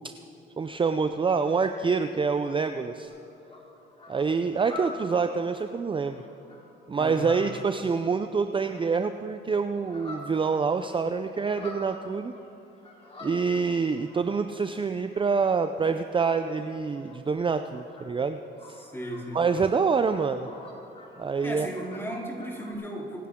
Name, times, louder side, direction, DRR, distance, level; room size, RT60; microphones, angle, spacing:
voice 1, 0.6-3.1 4.1-6.2 6.9-12.3 13.2-18.4 19.3-20.5 21.2-21.7, right 5 dB, 25° right, 8 dB, 0.5 m, -26 dB
sound 1, 3.0-9.2 9.5-14.6 14.9-22.7, left 1 dB, 30° left, 3.6 m, -48 dB
voice 2, 7.0-7.3 18.7-19.4 21.4-23.3, equal, 10° left, -2 dB, 3.5 m, -36 dB
26.0 x 10.5 x 3.7 m, 2.9 s
cardioid pair, 90°, 20 cm